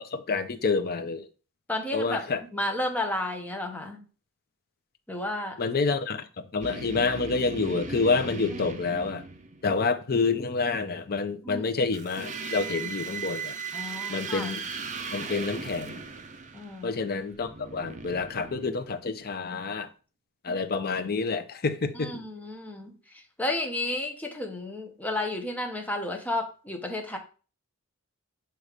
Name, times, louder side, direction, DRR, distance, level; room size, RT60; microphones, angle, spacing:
voice 1, 0.1-1.2 1.9-2.4 5.6-6.2 6.5-9.2 9.6-13.5 14.1-14.6 15.1-16.0 16.8-19.9 20.4-22.2, left 4 dB, 45° left, 0.6 m, -28 dB
voice 2, 1.7-2.2 2.5-4.0 5.1-5.6 8.5-8.6 11.4-11.7 13.7-14.5 16.5-17.0 21.9-27.2, left 1 dB, 5° left, 0.9 m, -32 dB
sound 1, 6.6-9.9 11.9-19.2, right 5 dB, 35° right, 0.6 m, -38 dB
6.5 x 3.1 x 4.9 m
head